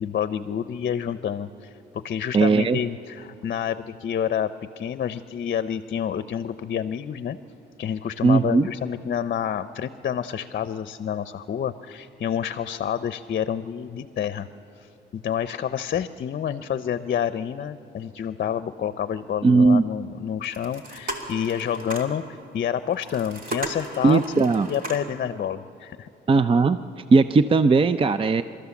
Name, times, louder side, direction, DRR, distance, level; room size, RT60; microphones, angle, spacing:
voice 1, 0.0-7.4 7.8-14.5 14.8-22.2 22.5-26.1, left 9 dB, 50° left, 13 dB, 0.7 m, -28 dB
voice 2, 2.3-2.8 8.2-8.7 19.4-19.8 24.0-24.7 26.3-26.8 27.1-28.4, right 4 dB, 25° right, 12 dB, 0.5 m, -18 dB
sound 1, 20.4-22.2 22.9-25.2, right 2 dB, 45° right, 2.9 m, -35 dB
29.5 x 13.5 x 7.2 m, 2.7 s
cardioid pair, 90°, 20 cm